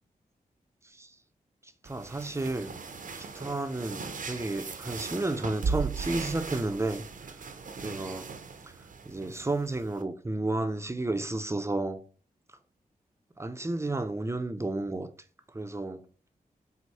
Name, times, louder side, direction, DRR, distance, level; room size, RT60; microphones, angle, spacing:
voice 1, 0.8-1.2 1.6-2.7 3.1-7.4 7.8-8.3 8.6-8.7 9.1-12.0 13.4-15.1 15.5-16.1, right 2 dB, 15° right, 0.5 m, -32 dB
sound 1, 1.8-10.0, right 5 dB, 55° right, 0.6 m, -38 dB
4.5 x 2.1 x 4.1 m
cardioid pair, 45°, 16 cm